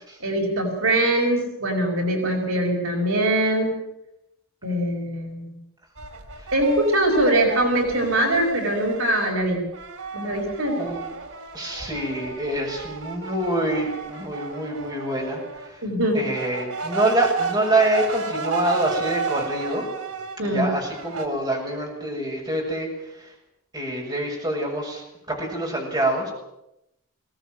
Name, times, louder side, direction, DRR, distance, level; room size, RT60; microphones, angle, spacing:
voice 1, 0.2-3.8 4.6-5.6 6.5-9.6 10.1-10.8 15.8-16.2 20.4-20.7, right 1 dB, 65° right, 2 dB, 5.6 m, -22 dB
sound 1, 6.0-9.4 9.7-15.7 16.2-20.4 20.9-21.3, right 5 dB, 85° right, 3.7 m, -32 dB
voice 2, 11.5-15.8 16.1-19.9 20.4-22.9 23.2-23.3 23.7-26.3, right 1 dB, 20° right, -1 dB, 7.0 m, -26 dB
22.0 x 18.5 x 9.3 m, 0.86 s
head